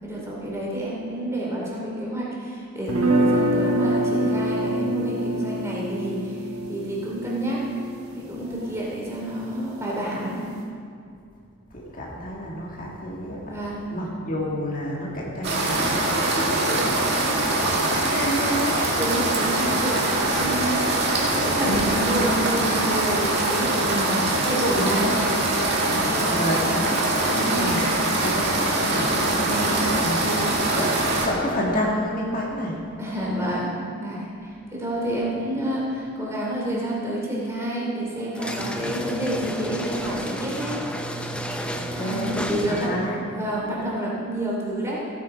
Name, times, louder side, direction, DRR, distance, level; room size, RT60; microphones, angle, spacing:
voice 1, 0.0-7.7 8.1-10.4 13.5-14.0 19.0-20.1 20.3-21.0 21.3-25.2 27.3-27.9 29.4-29.9 30.2-30.6 33.0-40.8 42.0-42.9 43.3-45.1, right 1 dB, 15° right, -5 dB, 2.7 m, -29 dB
sound 1, 2.9-8.9, right 1 dB, 85° right, 1.3 m, -25 dB
voice 2, 8.4-8.8 11.7-13.6 13.9-18.8 21.6-22.7 24.7-25.2 25.8-32.8 41.7-43.2, equal, 40° left, -3 dB, 1.7 m, -30 dB
sound 2, 15.4-31.3, right 2 dB, 50° right, 2.1 m, -23 dB
sound 3, 38.3-43.1, equal, 5° left, 0.5 m, -32 dB
16.0 x 8.6 x 5.1 m, 2.3 s
head